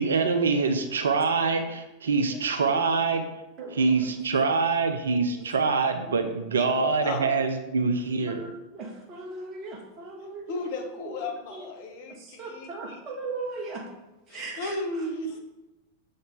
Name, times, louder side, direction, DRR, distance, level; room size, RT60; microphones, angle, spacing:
voice 1, 0.0-3.2 3.8-8.4, right 4 dB, 65° right, 8 dB, 0.5 m, -25 dB
voice 2, 2.3-2.9 3.6-4.6 6.0-7.2 8.3-10.6 11.0-11.2 11.5-11.7 12.2-13.9 14.3-15.1, right 3 dB, 30° right, 1 dB, 1.3 m, -39 dB
voice 3, 5.3-5.7 6.6-6.7 7.0-7.2 10.5-13.0 14.3-15.4, left 2 dB, 50° left, 2 dB, 0.9 m, -35 dB
6.9 x 3.9 x 3.7 m, 0.99 s
figure-of-eight pair, 90°, 0 cm